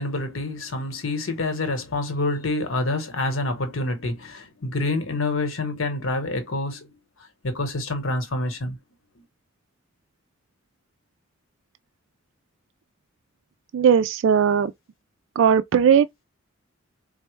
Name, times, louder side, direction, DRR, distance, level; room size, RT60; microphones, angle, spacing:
voice 1, 0.0-6.9 7.4-8.8, left 2 dB, 75° left, 1.0 m, -27 dB
voice 2, 13.7-14.7 15.4-16.2, right 7 dB, 65° right, 0.3 m, -18 dB
4.2 x 2.0 x 3.1 m
head